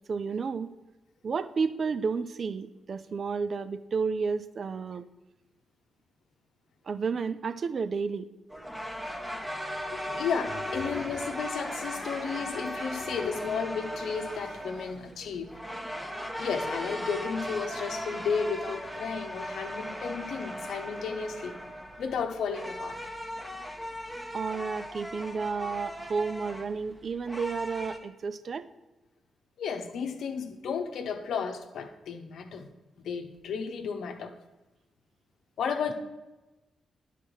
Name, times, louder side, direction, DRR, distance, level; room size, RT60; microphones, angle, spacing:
voice 1, 0.1-0.7 1.2-5.1 6.9-8.3 24.3-28.7, right 5 dB, 55° right, 14 dB, 0.4 m, -31 dB
sound 1, 8.5-28.0, equal, 5° right, 1.2 m, -38 dB
voice 2, 9.9-15.5 16.4-21.6 22.0-23.0 29.6-32.7 33.0-34.4 35.6-35.9, left 6 dB, 80° left, 6 dB, 0.8 m, -33 dB
9.9 x 4.1 x 6.2 m, 1.1 s
supercardioid pair, 60°, 0 cm